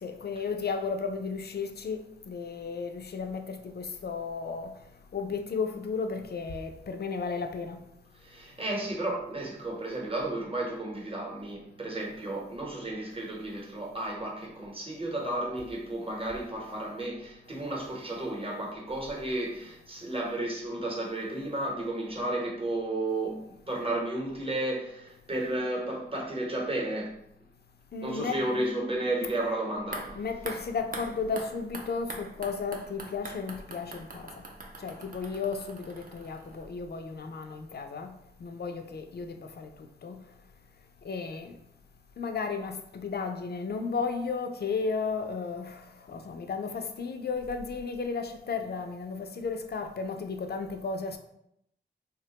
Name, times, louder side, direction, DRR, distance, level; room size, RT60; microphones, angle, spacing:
voice 1, 0.0-4.7 5.1-7.8 27.9-28.4 30.1-34.3 34.8-38.1 38.4-39.7 40.0-40.2 41.0-41.5 42.2-45.8 46.1-51.2, left 5 dB, 60° left, 0.4 m, -34 dB
voice 2, 8.1-27.2 28.0-30.2, right 1 dB, 30° right, 0.9 m, -33 dB
sound 1, 29.8-36.9 37.2-37.3, right 2 dB, 50° right, 0.5 m, -44 dB
3.4 x 2.1 x 2.8 m
wide cardioid pair, 55°, 19 cm